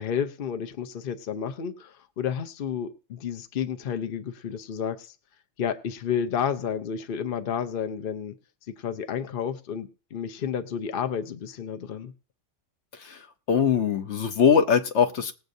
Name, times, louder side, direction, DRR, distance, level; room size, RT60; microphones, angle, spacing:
voice 1, 0.0-5.1 5.6-8.3 8.8-12.1, left 8 dB, 55° left, 0.9 m, -31 dB
voice 2, 12.9-15.3, left 7 dB, 70° left, 1.1 m, -22 dB
20.0 x 7.9 x 2.7 m
omnidirectional pair, 1.2 m